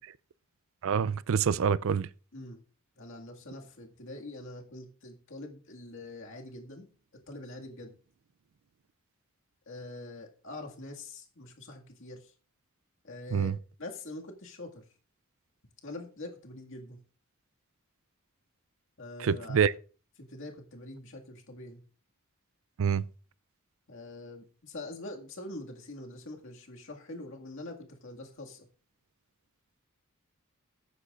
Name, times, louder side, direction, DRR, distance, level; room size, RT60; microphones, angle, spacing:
voice 1, 0.8-2.1 13.3-13.6 19.2-19.7 22.8-23.0, right 7 dB, 65° right, 0.4 m, -26 dB
voice 2, 3.0-6.9 7.3-7.9 9.7-12.3 13.0-14.8 15.8-17.0 19.0-19.7 20.2-21.8 23.9-28.7, left 2 dB, 65° left, 2.0 m, -44 dB
21.0 x 9.5 x 2.5 m
head